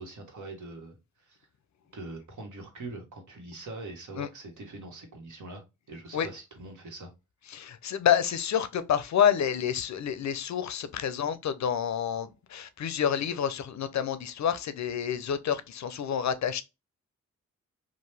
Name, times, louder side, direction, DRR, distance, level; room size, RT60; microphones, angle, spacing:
voice 1, 0.0-1.5 1.9-7.1, right 2 dB, 65° right, 1.1 m, -43 dB
voice 2, 7.5-16.6, left 8 dB, 55° left, 0.5 m, -28 dB
2.8 x 2.1 x 3.2 m
supercardioid pair, 40°, 33 cm